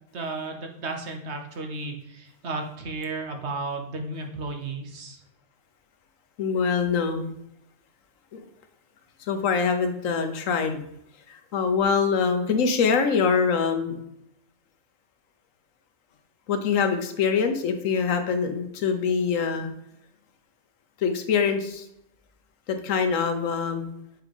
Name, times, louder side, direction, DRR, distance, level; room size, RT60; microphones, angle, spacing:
voice 1, 0.1-5.2, right 3 dB, 60° right, 3 dB, 1.2 m, -33 dB
voice 2, 6.4-7.3 8.3-8.4 9.3-10.8 11.3-14.0 16.5-19.7 21.0-21.8 22.7-23.9, left 5 dB, 80° left, 7 dB, 1.2 m, -24 dB
7.4 x 4.7 x 3.5 m, 0.79 s
omnidirectional pair, 1.3 m